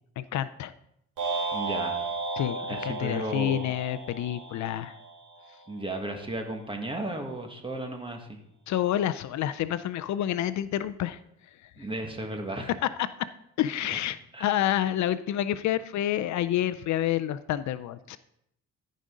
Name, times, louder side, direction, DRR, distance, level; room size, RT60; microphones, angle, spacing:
voice 1, 0.2-0.7 2.4-4.9 8.7-11.2 13.6-18.2, left 12 dB, 70° left, 15 dB, 0.5 m, -28 dB
sound 1, 1.2-5.5, right 3 dB, 85° right, 3.1 m, -34 dB
voice 2, 1.5-2.1 2.7-3.7 5.7-8.4 11.8-12.7 13.8-14.0 14.3-14.5, right 1 dB, 15° right, 3 dB, 1.7 m, -34 dB
14.0 x 5.2 x 3.8 m, 0.75 s
cardioid pair, 90°, 30 cm